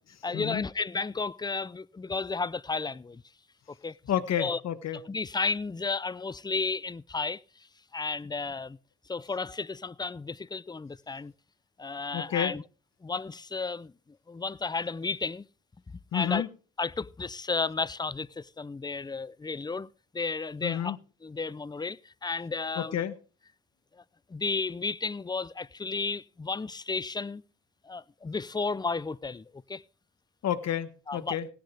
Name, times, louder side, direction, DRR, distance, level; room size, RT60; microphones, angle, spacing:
voice 1, 0.2-3.2 3.8-4.0 4.4-4.6 5.1-7.7 7.9-8.8 9.1-11.3 11.8-12.6 13.0-13.9 14.3-15.5 16.1-16.5 16.8-21.0 21.2-23.0 23.9-24.0 24.3-27.4 27.8-29.8 31.1-31.4, left 4 dB, 15° left, 0.5 m, -33 dB
voice 2, 4.1-5.0 12.1-12.5 16.1-16.5 20.6-21.0 22.8-23.1 30.4-31.5, left 10 dB, 60° left, 1.3 m, -30 dB
17.5 x 10.5 x 3.4 m
cardioid pair, 90°, 30 cm